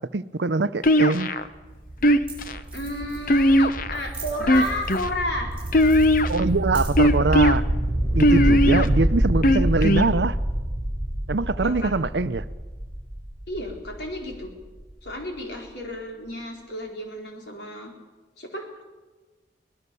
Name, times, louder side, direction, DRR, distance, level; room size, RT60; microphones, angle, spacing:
voice 1, 0.1-1.3 6.3-7.6 8.1-10.4 11.3-12.4, right 3 dB, 75° right, 0.7 m, -23 dB
sound 1, 0.8-1.5 2.0-2.6 3.3-4.0 4.4-5.1 5.7-6.4 7.0-7.5 8.2-8.9 9.4-10.1, left 1 dB, 50° left, 0.9 m, -18 dB
sound 2, 1.4-15.1, right 1 dB, 20° left, 3.7 m, -27 dB
sound 3, 2.0-2.1 2.3-2.4 2.6-3.4 3.9-5.1 5.5-7.1, right 4 dB, 5° right, 6.7 m, -43 dB
voice 2, 2.7-5.5 11.6-11.9 13.5-14.5 15.0-17.9 18.4-18.8, left 1 dB, 75° left, 4.3 m, -32 dB
23.0 x 19.0 x 7.0 m
head